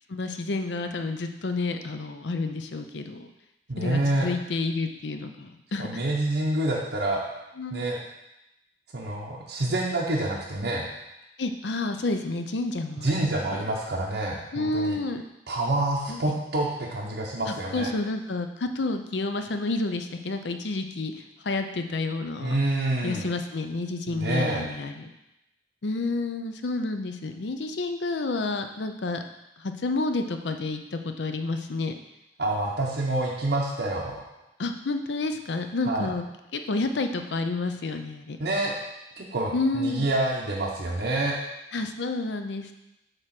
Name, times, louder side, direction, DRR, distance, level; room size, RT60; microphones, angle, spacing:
voice 1, 0.1-3.3 3.8-5.9 7.6-7.9 11.4-13.6 14.5-15.2 16.1-16.2 17.5-22.5 23.0-25.1 25.8-29.2 29.6-31.9 34.6-36.3 36.5-38.4 39.5-40.1 41.7-42.7, left 3 dB, 85° left, 7 dB, 0.6 m, -30 dB
voice 2, 3.7-4.3 5.8-7.2 7.7-8.0 8.9-10.8 13.0-15.0 15.5-17.9 22.4-23.3 24.1-24.7 32.4-34.2 35.8-36.1 38.4-38.7 39.2-41.3, right 2 dB, 75° right, -4 dB, 0.9 m, -27 dB
7.8 x 3.0 x 5.9 m, 0.90 s
head